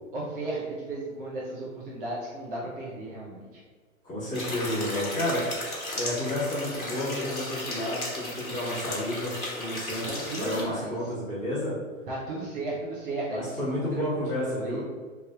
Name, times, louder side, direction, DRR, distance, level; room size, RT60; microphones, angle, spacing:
voice 1, 0.1-3.5 10.0-11.0 12.1-14.8, right 2 dB, 40° right, -5 dB, 0.7 m, -35 dB
voice 2, 4.0-5.4 5.9-10.1 10.4-11.7 13.3-14.8, left 1 dB, 20° left, -10 dB, 1.4 m, -31 dB
sound 1, 4.3-10.6, left 1 dB, 80° left, 1.1 m, -35 dB
3.3 x 2.6 x 2.3 m, 1.5 s
figure-of-eight pair, 110°, 42 cm